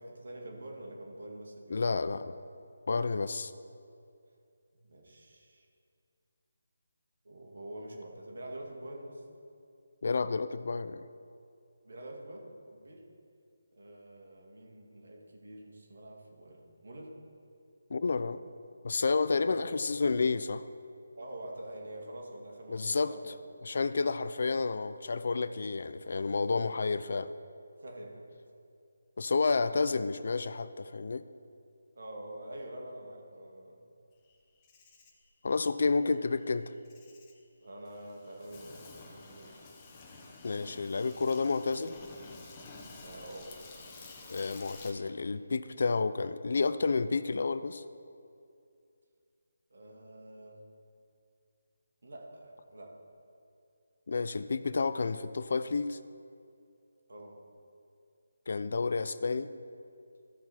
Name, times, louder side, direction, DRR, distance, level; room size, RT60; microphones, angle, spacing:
voice 1, 0.0-2.1 4.7-5.7 7.2-9.3 11.8-13.0 13.7-17.1 19.3-19.6 21.2-23.4 26.5-26.8 27.8-28.3 29.7-29.9 31.9-33.8 37.6-39.8 43.0-43.5 49.7-50.7 52.0-53.0 57.1-57.4, right 1 dB, 65° right, 0 dB, 2.2 m, -46 dB
voice 2, 1.7-2.3 2.9-3.5 10.0-11.1 17.9-18.4 18.8-20.6 22.7-23.1 23.6-27.3 29.2-31.2 35.4-36.7 40.4-42.0 44.3-47.8 54.1-56.0 58.5-59.5, left 4 dB, 60° left, 14 dB, 0.4 m, -30 dB
Insect, 34.3-44.9, left 3 dB, 20° left, 1.2 m, -51 dB
14.5 x 6.1 x 4.3 m, 2.4 s
figure-of-eight pair, 160°, 0 cm